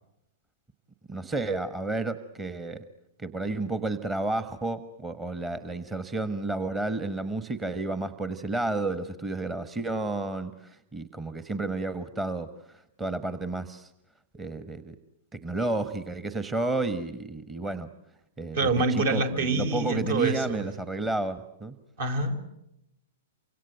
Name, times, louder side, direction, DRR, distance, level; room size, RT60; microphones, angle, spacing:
voice 1, 1.1-2.8 3.2-13.9 14.3-15.0 15.3-17.9 18.4-21.8, right 2 dB, 15° right, 11 dB, 1.2 m, -31 dB
voice 2, 18.5-20.6 22.0-22.5, right 3 dB, 55° right, 7 dB, 4.7 m, -26 dB
29.0 x 25.0 x 7.9 m, 0.86 s
figure-of-eight pair, 110°, 0 cm